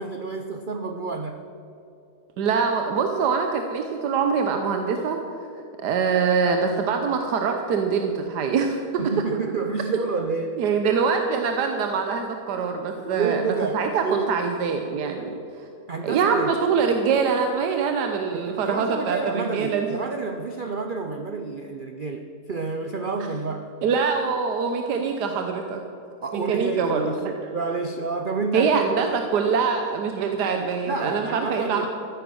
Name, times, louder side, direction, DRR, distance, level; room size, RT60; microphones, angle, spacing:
voice 1, 0.0-1.4 9.0-10.6 13.0-14.4 15.9-16.6 18.3-23.8 26.2-28.8 30.9-31.9, right 4 dB, 55° right, 6 dB, 0.5 m, -29 dB
voice 2, 2.4-5.2 5.8-8.8 10.6-13.4 13.7-15.7 16.0-20.0 23.8-25.8 26.3-27.3 28.5-31.9, right 5 dB, 90° right, 4 dB, 1.4 m, -24 dB
14.0 x 9.8 x 6.3 m, 2.8 s
omnidirectional pair, 1.7 m